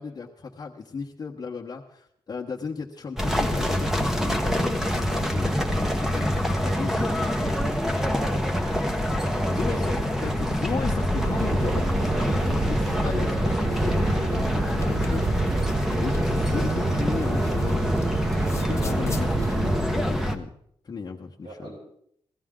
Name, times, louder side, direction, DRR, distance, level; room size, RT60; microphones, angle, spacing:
voice 1, 0.0-7.6 9.5-17.9 18.3-20.5 20.8-21.7, left 5 dB, 45° left, -2 dB, 1.2 m, -35 dB
sound 1, 3.2-20.4, equal, 5° right, 1.2 m, -25 dB
voice 2, 9.2-10.2 12.1-12.4 21.4-21.8, right 2 dB, 60° right, -4 dB, 6.4 m, -42 dB
sound 2, 11.2-19.9, right 5 dB, 35° right, 0.4 m, -30 dB
sound 3, 14.7-18.1 18.4-19.3, left 3 dB, 30° left, 1.4 m, -36 dB
18.0 x 14.0 x 3.7 m, 0.69 s
wide cardioid pair, 100°, 9 cm